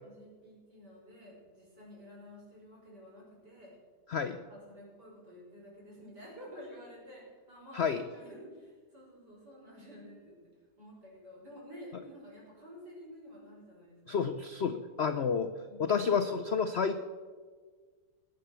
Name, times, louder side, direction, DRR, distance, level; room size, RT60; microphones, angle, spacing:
voice 1, 0.0-3.7 4.5-10.4 10.8-14.2 14.7-15.1 15.7-16.0, equal, 65° right, -4 dB, 6.2 m, -51 dB
voice 2, 14.1-15.5 15.8-17.0, left 6 dB, 65° left, 9 dB, 0.6 m, -30 dB
20.5 x 8.1 x 6.8 m, 1.5 s
omnidirectional pair, 1.9 m